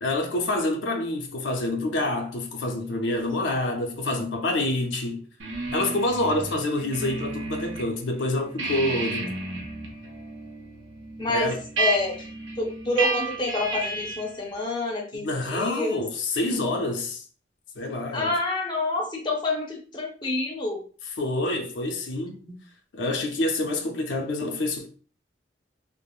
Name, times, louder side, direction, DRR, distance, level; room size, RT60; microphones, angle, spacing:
voice 1, 0.0-5.2 5.7-9.3 11.3-11.6 15.1-17.2 17.8-18.3 21.2-22.4 22.9-24.9, left 2 dB, 80° left, 0.5 m, -27 dB
sound 1, 5.4-7.9 8.2-14.4, right 2 dB, 80° right, 0.7 m, -32 dB
voice 2, 11.2-12.2 12.6-16.0 18.1-20.8, left 2 dB, 25° left, 0.6 m, -28 dB
3.3 x 2.0 x 2.3 m
head